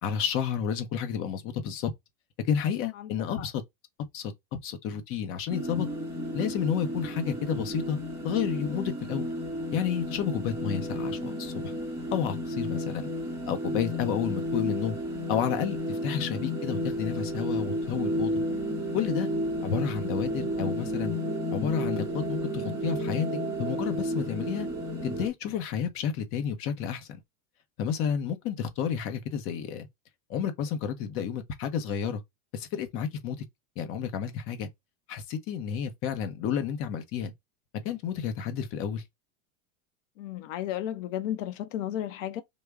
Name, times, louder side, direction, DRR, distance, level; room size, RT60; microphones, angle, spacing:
voice 1, 0.0-1.9 2.4-3.6 4.1-5.9 6.3-8.0 8.2-9.3 9.7-11.7 12.1-13.1 13.5-15.0 15.3-18.3 18.9-19.3 19.6-21.2 21.5-23.3 23.6-24.7 25.0-27.2 27.8-29.9 30.3-32.2 32.5-33.4 33.8-34.7 35.1-37.3 37.8-39.0, left 8 dB, 35° left, 0.6 m, -31 dB
sound 1, 5.5-25.3, equal, 5° right, 0.9 m, -32 dB
voice 2, 40.2-42.4, left 11 dB, 70° left, 0.7 m, -34 dB
3.3 x 2.1 x 3.4 m
supercardioid pair, 160°, 40 cm